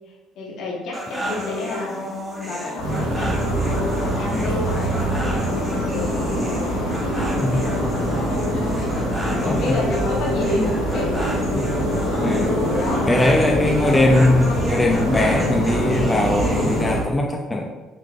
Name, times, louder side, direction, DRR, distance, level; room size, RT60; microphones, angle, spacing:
voice 1, 0.1-2.0 2.4-3.3 3.8-8.9 9.4-11.3 12.0-12.3 12.7-13.1 13.4-14.3 15.4-15.6, left 2 dB, 65° left, -2 dB, 1.2 m, -31 dB
sound 1, 0.9-16.9, left 1 dB, 10° right, 1.4 m, -31 dB
sound 2, 2.8-17.0, equal, 90° left, 1.4 m, -24 dB
voice 2, 9.5-9.8 10.6-10.7 11.5-11.8 12.2-12.6 13.1-17.7, left 2 dB, 15° left, 2 dB, 0.5 m, -20 dB
4.8 x 4.0 x 2.5 m, 1.2 s
hypercardioid pair, 55°, 0 cm